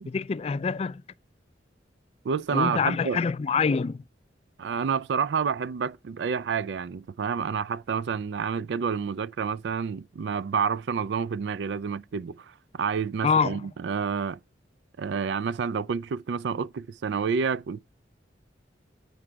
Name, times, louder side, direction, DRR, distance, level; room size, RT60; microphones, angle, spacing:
voice 1, 0.1-1.0 2.5-4.0 13.2-13.6, left 5 dB, 35° left, 0.3 m, -25 dB
voice 2, 2.2-3.2 4.6-14.4 15.0-17.8, right 6 dB, 70° right, 0.4 m, -29 dB
8.6 x 5.0 x 4.5 m
head